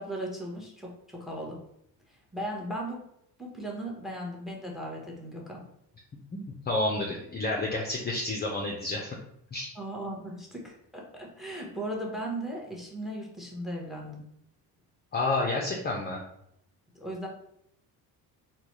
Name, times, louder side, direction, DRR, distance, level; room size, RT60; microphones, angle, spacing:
voice 1, 0.0-1.6 2.1-3.0 3.4-5.7 9.8-14.2 16.9-17.3, right 1 dB, ahead, -1 dB, 0.9 m, -37 dB
voice 2, 6.6-9.2 9.5-9.7 15.1-16.2, left 2 dB, 25° left, -1 dB, 0.5 m, -29 dB
3.8 x 2.3 x 3.0 m, 0.75 s
supercardioid pair, 90°, 42 cm